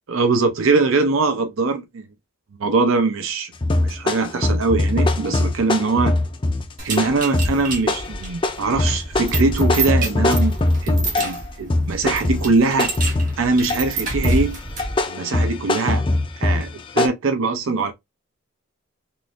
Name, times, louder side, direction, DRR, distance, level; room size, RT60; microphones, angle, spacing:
voice 1, 0.1-2.1 2.6-3.5 3.8-6.2 6.8-10.6 10.8-12.9 13.4-14.6 15.1-16.0 16.4-17.9, right 3 dB, 80° right, 0.6 m, -21 dB
sound 1, 3.6-11.4 11.7-13.9 14.2-17.1, left 2 dB, 25° left, 0.4 m, -21 dB
sound 2, 6.8-15.0, right 3 dB, 40° right, 1.0 m, -29 dB
3.8 x 2.5 x 2.5 m
head